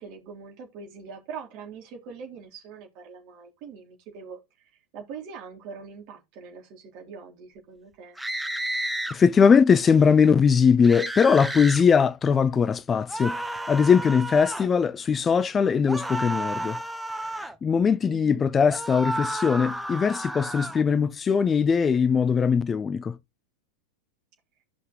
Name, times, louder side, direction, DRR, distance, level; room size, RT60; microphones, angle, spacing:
voice 1, 0.0-8.2 18.1-18.5, right 6 dB, 40° right, 3.4 m, -43 dB
sound 1, 8.2-9.2 10.8-11.8 13.1-14.7 15.8-17.5 18.7-20.8, right 1 dB, 5° right, 1.0 m, -32 dB
voice 2, 9.1-13.4 13.7-16.8 17.6-23.2, left 6 dB, 20° left, 0.4 m, -20 dB
14.5 x 5.7 x 3.1 m
figure-of-eight pair, 90°, 0 cm